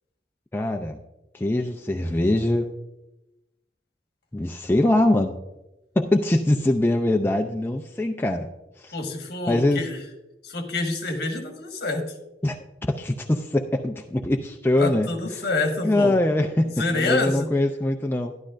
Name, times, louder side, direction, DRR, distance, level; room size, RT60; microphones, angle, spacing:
voice 1, 0.5-1.0 1.3-2.7 4.3-5.3 6.0-8.5 8.8-9.0 9.5-9.8 12.4-12.6 12.9-15.5 15.8-18.3, left 1 dB, 10° left, 3 dB, 0.4 m, -23 dB
voice 2, 8.9-10.0 10.4-12.0 14.8-16.1 16.8-17.5, left 2 dB, 60° left, 4 dB, 1.4 m, -27 dB
12.0 x 11.5 x 2.5 m, 0.96 s
head